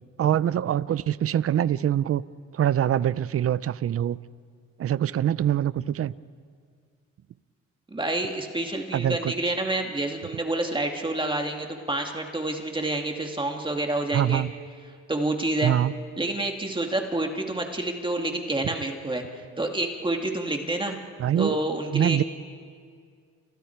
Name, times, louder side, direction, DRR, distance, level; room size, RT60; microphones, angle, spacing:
voice 1, 0.2-2.2 2.5-4.2 4.8-6.1 8.9-9.5 14.1-14.5 15.6-15.9 21.2-21.6 21.9-22.2, right 10 dB, 50° right, 18 dB, 0.6 m, -24 dB
voice 2, 7.9-14.4 15.1-15.7 16.2-21.0 21.4-22.2, right 2 dB, 15° right, 2 dB, 2.3 m, -28 dB
29.5 x 28.5 x 4.6 m, 2.1 s
cardioid pair, 90°, 30 cm